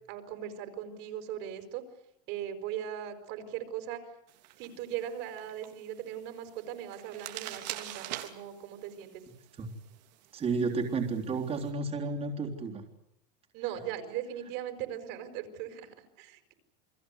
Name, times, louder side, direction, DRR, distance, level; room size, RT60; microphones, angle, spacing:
voice 1, 0.1-1.8 2.3-4.0 4.6-9.2 13.5-16.5, right 10 dB, 60° right, 7 dB, 5.1 m, -39 dB
sound 1, 4.3-11.7, right 14 dB, 85° right, 3.3 m, -46 dB
voice 2, 10.3-12.8, right 4 dB, 30° right, 0 dB, 3.6 m, -32 dB
29.5 x 21.0 x 8.2 m, 0.78 s
supercardioid pair, 140°, 21 cm